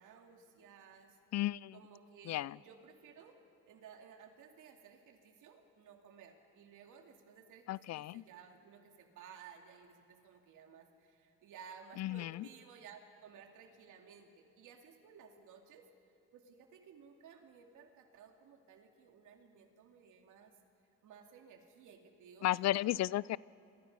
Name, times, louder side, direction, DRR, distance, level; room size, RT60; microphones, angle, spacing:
voice 1, 0.0-1.2 1.7-3.4 3.7-15.9 16.3-20.5 21.0-23.0, right 6 dB, 85° right, 3 dB, 2.6 m, -57 dB
voice 2, 1.3-1.7 2.3-2.5 7.7-8.2 12.0-12.4 22.4-23.4, left 14 dB, 60° left, 22 dB, 0.5 m, -34 dB
29.5 x 23.5 x 5.5 m, 2.9 s
cardioid pair, 90°, 30 cm